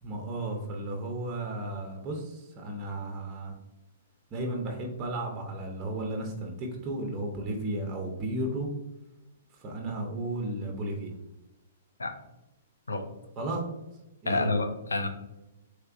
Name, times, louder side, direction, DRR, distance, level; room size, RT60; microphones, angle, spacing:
voice 1, 0.0-3.5 4.3-8.7 9.6-11.1 13.4-13.7 14.2-14.5, right 1 dB, 30° right, 2 dB, 0.6 m, -34 dB
voice 2, 14.3-15.1, left 3 dB, 85° left, 6 dB, 0.4 m, -28 dB
3.4 x 3.0 x 2.4 m, 0.95 s
hypercardioid pair, 120°, 0 cm